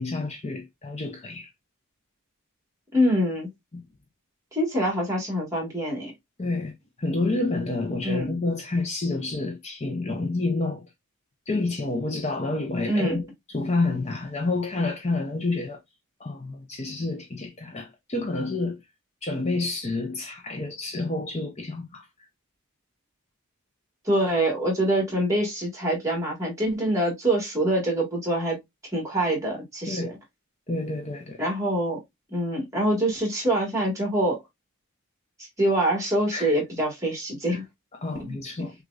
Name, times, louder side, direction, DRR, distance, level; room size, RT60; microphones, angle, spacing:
voice 1, 0.0-1.5 3.7-3.8 6.4-6.7 7.0-10.8 11.5-15.8 16.2-18.8 19.2-22.1 29.8-30.1 30.7-31.5 36.3-36.6 37.5-37.6 37.9-38.7, left 2 dB, 30° left, 0.7 m, -29 dB
voice 2, 2.9-3.5 4.5-6.1 8.0-8.3 12.9-13.2 24.1-28.6 28.9-30.1 31.4-32.0 32.3-34.4 35.6-37.6 38.2-38.4, right 1 dB, 15° right, 1.9 m, -25 dB
6.3 x 2.5 x 2.5 m
head